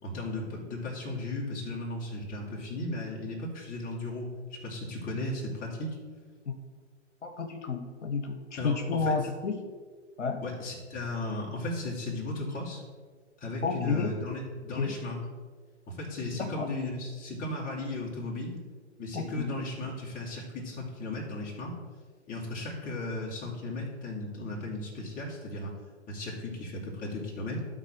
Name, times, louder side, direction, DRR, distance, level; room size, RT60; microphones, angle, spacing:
voice 1, 0.0-6.0 8.6-9.2 10.4-12.8 13.4-15.2 15.9-18.6 19.0-21.8 22.3-25.8 26.1-27.6, left 2 dB, 25° left, -3 dB, 2.7 m, -36 dB
voice 2, 7.2-9.6 10.2-10.4 13.6-14.2 14.8-14.9 16.4-16.7 19.1-19.6, left 5 dB, 80° left, 5 dB, 1.2 m, -31 dB
12.5 x 4.1 x 6.2 m, 1.5 s
hypercardioid pair, 120°, 35 cm